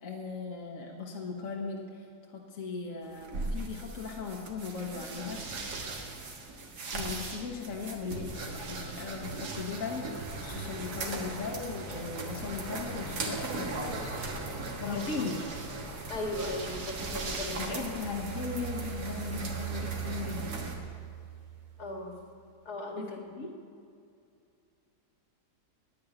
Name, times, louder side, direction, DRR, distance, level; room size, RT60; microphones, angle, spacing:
voice 1, 0.0-5.4 6.9-14.2 14.8-15.4 17.6-20.9 23.0-23.5, left 4 dB, 55° left, 0 dB, 1.5 m, -38 dB
sound 1, 3.0-20.7, right 2 dB, 80° right, 2.1 m, -39 dB
sound 2, 5.0-17.7, right 3 dB, 65° right, 1.6 m, -45 dB
voice 2, 16.1-17.8 21.8-22.1 22.7-23.2, left 1 dB, 70° left, 1 dB, 2.5 m, -37 dB
sound 3, 18.0-22.1, right 13 dB, 50° right, 0.6 m, -40 dB
10.5 x 9.8 x 9.5 m, 2.5 s
omnidirectional pair, 1.7 m